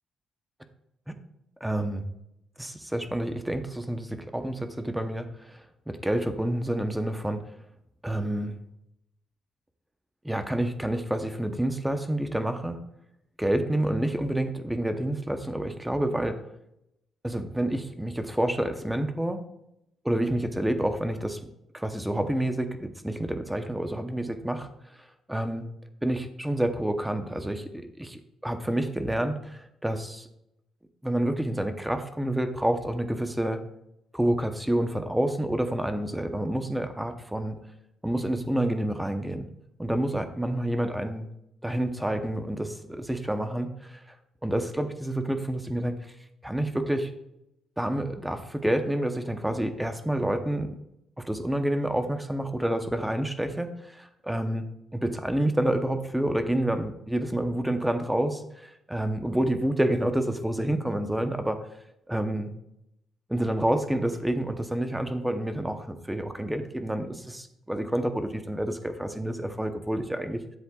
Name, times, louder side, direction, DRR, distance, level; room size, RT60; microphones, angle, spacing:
voice 1, 1.6-2.0 2.6-7.4 8.0-8.5 10.2-12.8 13.4-16.4 17.2-19.4 20.0-21.4 21.7-24.7 25.0-25.7 26.0-30.3 31.0-33.6 34.1-37.6 38.0-39.5 39.8-41.3 41.6-44.2 44.4-46.0 46.4-47.1 47.8-50.7 51.2-61.6 62.1-62.5 63.3-70.6, right 1 dB, 5° right, 7 dB, 0.8 m, -28 dB
10.0 x 7.7 x 2.4 m, 0.81 s
cardioid pair, 90°, 0 cm